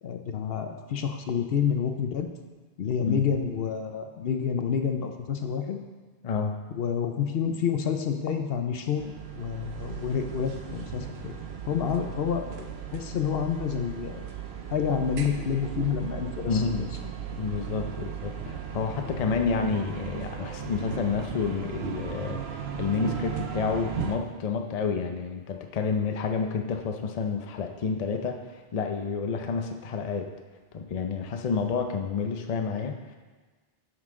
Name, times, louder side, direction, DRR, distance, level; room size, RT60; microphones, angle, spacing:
voice 1, 0.0-2.3 2.8-5.8 6.7-11.4 11.7-14.3 14.7-16.9 18.5-18.6, left 7 dB, 70° left, 6 dB, 0.8 m, -29 dB
voice 2, 6.2-6.5 16.5-16.9 17.3-30.3 30.7-33.2, left 5 dB, 45° left, 4 dB, 0.6 m, -29 dB
sound 1, 9.0-24.2, right 8 dB, 80° right, 0.9 m, -36 dB
9.6 x 5.7 x 3.7 m, 1.3 s
omnidirectional pair, 1.1 m